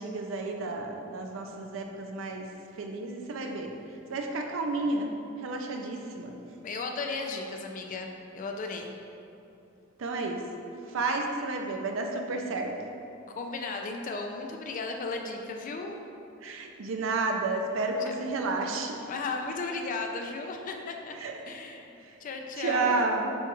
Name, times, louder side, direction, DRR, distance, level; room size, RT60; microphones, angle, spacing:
voice 1, 0.0-2.5 2.8-3.7 4.1-5.1 5.4-6.4 10.0-10.4 10.9-12.7 16.4-19.1 21.2-21.4 22.6-23.3, right 3 dB, 65° right, 3 dB, 0.4 m, -31 dB
voice 2, 6.6-8.9 13.3-16.0 17.8-18.2 19.1-21.2 21.5-23.2, left 3 dB, 40° left, 3 dB, 0.3 m, -35 dB
6.9 x 2.3 x 3.0 m, 2.8 s
head